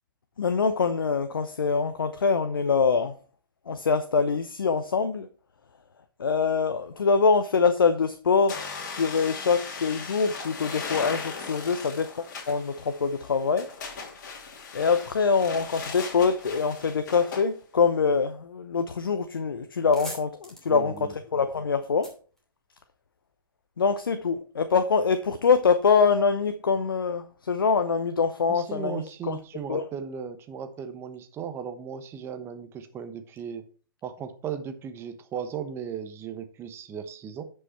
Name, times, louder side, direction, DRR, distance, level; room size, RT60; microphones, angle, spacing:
voice 1, 0.4-3.2 3.7-5.3 6.2-13.7 14.7-22.1 23.8-29.4 29.7-29.8, left 5 dB, 75° left, 0.8 m, -24 dB
sound 1, 8.5-17.5, left 5 dB, 50° left, 2.9 m, -38 dB
sound 2, 19.7-23.2, equal, 5° left, 2.8 m, -45 dB
voice 2, 20.7-21.1 28.5-33.6 34.0-37.4, right 7 dB, 20° right, 1.1 m, -36 dB
9.7 x 5.6 x 4.4 m
figure-of-eight pair, 120°, 12 cm